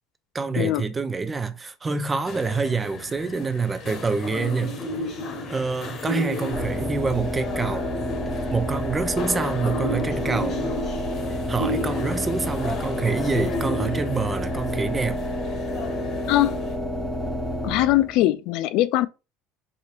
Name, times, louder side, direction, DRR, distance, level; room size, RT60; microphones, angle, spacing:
voice 1, 0.3-4.8 5.5-7.9 8.5-10.6 11.5-15.2, right 4 dB, 20° right, 0.5 m, -26 dB
sound 1, 2.3-16.8, left 2 dB, 45° left, 1.1 m, -33 dB
sound 2, 6.5-18.2, left 1 dB, 10° left, 0.8 m, -29 dB
voice 2, 16.3-16.6 17.6-19.1, left 15 dB, 65° left, 0.4 m, -21 dB
4.9 x 2.8 x 2.4 m
supercardioid pair, 125°, 0 cm